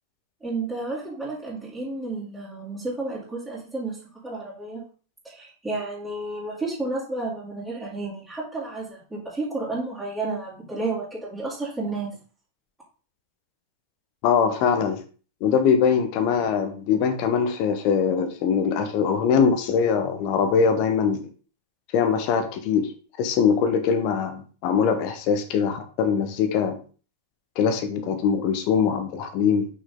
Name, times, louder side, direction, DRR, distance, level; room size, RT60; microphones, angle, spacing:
voice 1, 0.4-4.0 4.2-4.8 5.2-12.2, right 3 dB, 5° right, -9 dB, 3.1 m, -31 dB
voice 2, 14.2-15.0 15.4-21.3 21.9-22.9 23.2-26.8 27.5-29.7, left 6 dB, 45° left, 8 dB, 1.2 m, -22 dB
6.3 x 6.1 x 3.7 m, 0.38 s
figure-of-eight pair, 90°, 0 cm